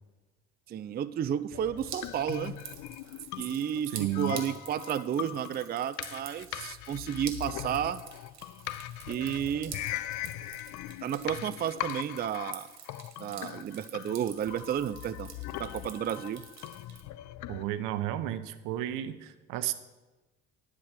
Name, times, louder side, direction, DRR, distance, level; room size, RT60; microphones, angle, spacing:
voice 1, 0.7-2.6 3.4-8.0 9.1-9.8 11.0-12.7 13.2-15.3 15.6-16.4, right 9 dB, 30° right, 14 dB, 0.4 m, -32 dB
sound 1, 1.5-17.7, left 14 dB, 60° left, 0.5 m, -40 dB
Drip, 1.8-17.0, right 7 dB, 55° right, 1.8 m, -48 dB
voice 2, 3.9-4.4 17.5-19.7, right 13 dB, 75° right, 12 dB, 0.8 m, -32 dB
10.5 x 4.8 x 7.4 m, 1.2 s
hypercardioid pair, 70°, 32 cm